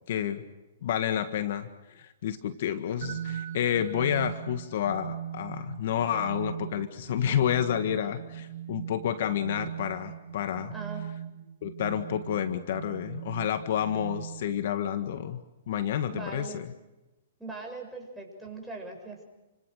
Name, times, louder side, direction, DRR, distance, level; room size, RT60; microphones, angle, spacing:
voice 1, 0.1-0.4 0.8-10.7 11.6-16.6, left 10 dB, 60° left, 9 dB, 1.7 m, -30 dB
sound 1, 3.0-14.7, right 9 dB, 65° right, 1.9 m, -40 dB
voice 2, 10.7-11.1 16.1-16.6 17.4-19.2, right 3 dB, 5° right, 0 dB, 7.4 m, -40 dB
29.5 x 26.0 x 6.6 m, 1.0 s
hypercardioid pair, 130°, 0 cm